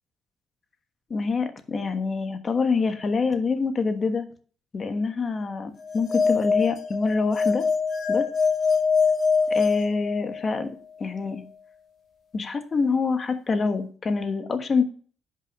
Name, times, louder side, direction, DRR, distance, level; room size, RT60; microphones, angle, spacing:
voice 1, 1.1-4.3 4.7-7.7 8.1-8.3 9.5-10.7 11.0-11.4 12.3-14.8, left 4 dB, 40° left, 8 dB, 1.3 m, -26 dB
sound 1, 5.9-10.7, left 5 dB, 60° left, 2.7 m, -24 dB
10.5 x 5.6 x 4.8 m, 0.43 s
cardioid pair, 90°, 0 cm